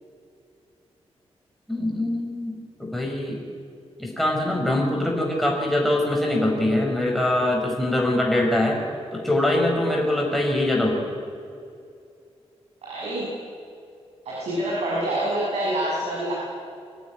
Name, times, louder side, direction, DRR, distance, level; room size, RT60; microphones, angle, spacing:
voice 1, 1.7-3.4 4.0-8.8 9.1-11.1, left 1 dB, ahead, -1 dB, 5.0 m, -23 dB
voice 2, 12.8-13.3 14.3-16.3, right 1 dB, 85° right, -5 dB, 6.9 m, -26 dB
24.5 x 15.0 x 9.8 m, 2.4 s
wide cardioid pair, 130°, 11 cm